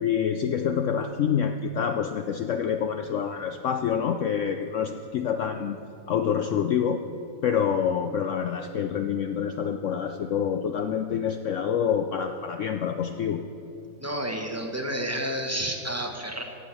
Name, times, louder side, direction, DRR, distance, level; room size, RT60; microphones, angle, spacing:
voice 1, 0.0-5.8 6.1-7.0 7.4-13.4, left 8 dB, 85° left, 7 dB, 0.6 m, -27 dB
voice 2, 14.0-16.4, right 1 dB, 15° right, 2 dB, 0.6 m, -30 dB
14.5 x 8.3 x 5.8 m, 2.5 s
omnidirectional pair, 1.9 m